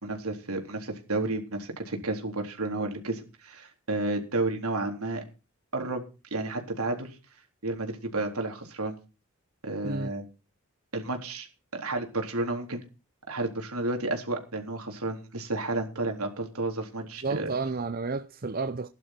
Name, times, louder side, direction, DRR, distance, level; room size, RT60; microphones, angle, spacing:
voice 1, 0.0-5.2 5.7-6.0 6.3-7.2 7.6-9.0 9.6-10.3 10.9-11.5 11.7-12.8 13.3-17.5, right 2 dB, 85° right, 3.9 m, -31 dB
voice 2, 17.2-18.9, right 3 dB, 40° right, 0.6 m, -31 dB
17.0 x 11.5 x 4.5 m
head